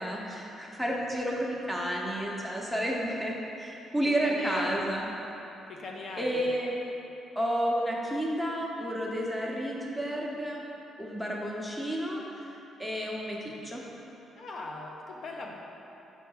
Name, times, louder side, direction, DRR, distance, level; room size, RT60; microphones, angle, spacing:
voice 1, 0.0-5.1 6.2-6.8 7.3-10.6 11.0-13.8, equal, 5° left, -3 dB, 1.1 m, -31 dB
voice 2, 4.0-4.9 5.7-6.4 14.4-15.5, left 2 dB, 55° left, 0 dB, 0.7 m, -39 dB
5.8 x 5.3 x 4.7 m, 3.0 s
cardioid pair, 90°, 0 cm